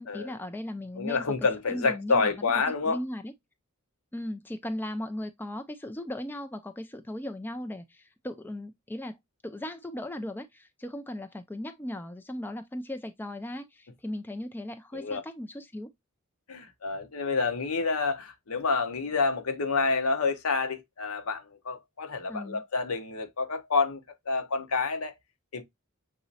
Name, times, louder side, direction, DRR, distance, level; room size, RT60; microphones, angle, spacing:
voice 1, 0.0-1.2 1.7-2.5 2.8-3.3 4.1-9.2 9.4-15.9 22.3-22.6, left 1 dB, 10° left, 0.4 m, -37 dB
voice 2, 1.0-3.0 14.9-15.2 16.5-25.1 25.5-25.6, left 4 dB, 70° left, 0.9 m, -28 dB
6.4 x 3.0 x 2.7 m
head